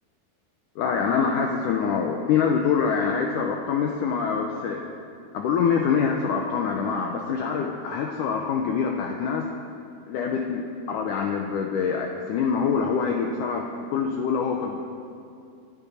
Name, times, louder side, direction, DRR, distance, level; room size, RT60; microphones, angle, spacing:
voice 1, 0.8-4.8 5.3-9.5 10.1-14.8, left 6 dB, 80° left, 2 dB, 1.8 m, -25 dB
25.5 x 10.5 x 4.2 m, 2.4 s
omnidirectional pair, 4.8 m